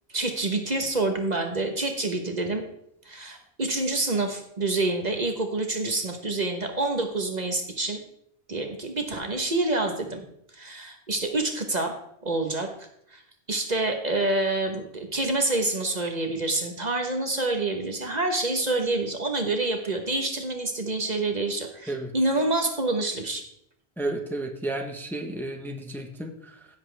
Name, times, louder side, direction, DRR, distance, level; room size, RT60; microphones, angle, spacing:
voice 1, 0.1-2.6 3.0-8.0 8.5-10.3 10.5-11.9 12.2-13.2 13.5-23.4, right 2 dB, 40° right, 4 dB, 1.2 m, -27 dB
voice 2, 24.0-26.7, right 2 dB, ahead, 2 dB, 1.0 m, -32 dB
16.0 x 7.3 x 3.4 m, 0.73 s
omnidirectional pair, 1.1 m